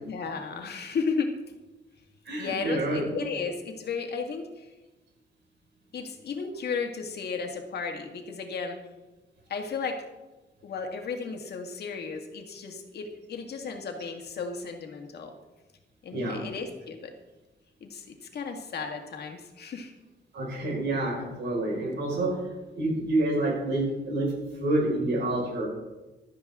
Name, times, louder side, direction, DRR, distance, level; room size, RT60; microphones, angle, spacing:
voice 1, 0.1-1.3 2.4-4.7 5.9-8.8 9.5-10.0 10.6-15.3 16.0-17.1 17.8-19.9, left 5 dB, 65° left, 3 dB, 1.9 m, -34 dB
voice 2, 2.3-3.1 16.1-16.4 20.3-24.3 24.6-25.7, right 1 dB, 80° right, -2 dB, 5.3 m, -28 dB
16.0 x 12.5 x 3.7 m, 1.1 s
wide cardioid pair, 170°, 18 cm